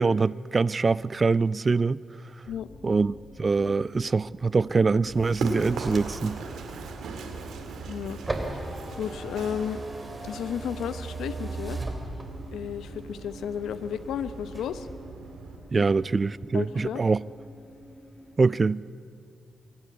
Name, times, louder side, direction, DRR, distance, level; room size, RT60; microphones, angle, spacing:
voice 1, 0.0-2.0 2.8-3.1 3.4-6.4 15.7-17.2 18.4-18.8, right 4 dB, 40° right, 0.4 m, -24 dB
sound 1, 2.4-18.4, equal, 45° left, 6.9 m, -49 dB
Run, 5.0-15.6, right 4 dB, 85° right, 2.1 m, -40 dB
sound 2, 5.8-12.6 13.1-14.1 14.4-14.9, right 2 dB, 25° right, 3.1 m, -37 dB
voice 2, 7.8-8.2 9.0-9.8 10.2-11.8 12.5-14.9 16.5-17.0, left 8 dB, 90° left, 0.8 m, -33 dB
24.5 x 12.0 x 9.5 m
cardioid pair, 60°, 0 cm